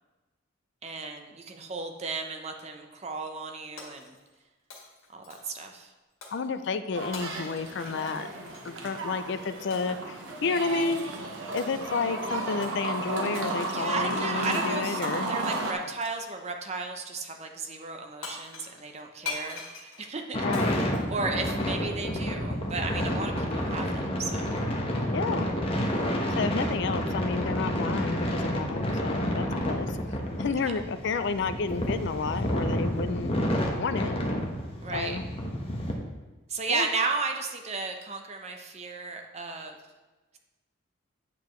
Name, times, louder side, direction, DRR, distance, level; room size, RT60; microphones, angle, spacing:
voice 1, 0.8-4.1 5.1-5.9 13.7-15.0 15.3-24.6 30.6-30.7 34.8-35.2 36.5-39.8, right 3 dB, 35° right, 4 dB, 0.7 m, -34 dB
Shatter, 3.8-4.4 4.7-5.7 6.2-6.5 7.1-8.7 9.7-10.0 10.8-11.1 11.6-12.1 12.6-12.8 13.3-13.6 14.5-15.1 16.0-16.4 17.9-18.0 18.2-21.8, left 4 dB, 85° left, 1.7 m, -43 dB
voice 2, 6.3-8.3 8.6-11.0 11.5-15.3 20.4-20.8 25.1-25.5 26.3-30.0 30.4-33.3 33.8-34.1 34.9-35.3 36.7-36.9, left 4 dB, 60° left, 11 dB, 0.4 m, -31 dB
sound 1, 6.9-15.7, right 2 dB, 70° right, 1.1 m, -33 dB
sound 2, 20.3-35.9, equal, 30° left, 1.0 m, -29 dB
8.4 x 6.9 x 3.1 m, 1.2 s
head